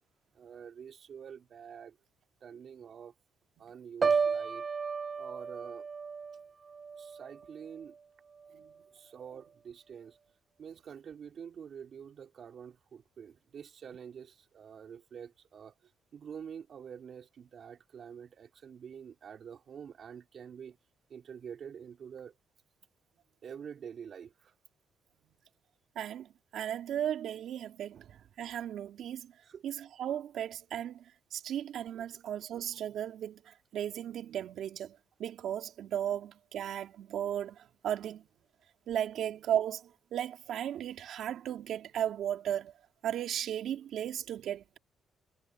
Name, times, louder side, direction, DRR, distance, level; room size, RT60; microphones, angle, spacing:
voice 1, 0.4-1.9 2.4-3.1 3.6-4.7 5.2-5.9 7.0-7.9 8.9-10.2 10.6-15.7 16.1-20.8 21.1-22.3 23.4-24.5 29.5-29.6 31.9-32.0, right 7 dB, 55° right, 4.4 m, -47 dB
Piano, 4.0-8.0 8.4-8.7, right 5 dB, 40° right, 0.6 m, -33 dB
voice 2, 26.0-29.3 29.6-38.2 38.9-42.7 43.0-44.8, right 10 dB, 75° right, 3.6 m, -36 dB
cardioid pair, 80°, 0 cm